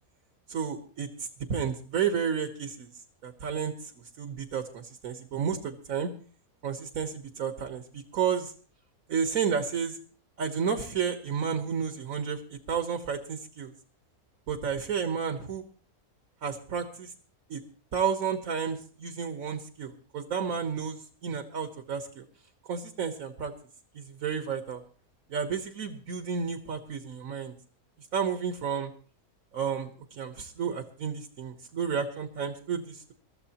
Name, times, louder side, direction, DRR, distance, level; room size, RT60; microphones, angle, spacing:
voice 1, 0.5-2.9 3.2-3.7 4.2-6.1 6.6-8.5 9.1-10.0 10.4-13.7 14.5-15.6 16.4-17.1 17.5-17.6 17.9-22.2 22.7-23.5 23.9-24.8 25.3-27.5 28.1-28.9 29.5-33.1, right 6 dB, 70° right, 7 dB, 1.6 m, -31 dB
22.5 x 14.0 x 2.9 m, 0.42 s
omnidirectional pair, 1.6 m